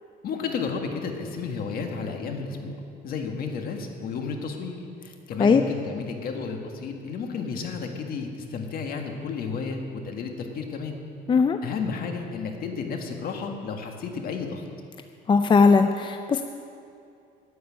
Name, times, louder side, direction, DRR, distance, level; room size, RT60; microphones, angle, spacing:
voice 1, 0.2-2.8 3.0-11.0 11.6-14.6, left 5 dB, 60° left, 3 dB, 1.7 m, -32 dB
voice 2, 15.3-16.4, left 5 dB, 30° left, 7 dB, 0.5 m, -18 dB
9.6 x 8.6 x 9.9 m, 2.5 s
cardioid pair, 110°, 17 cm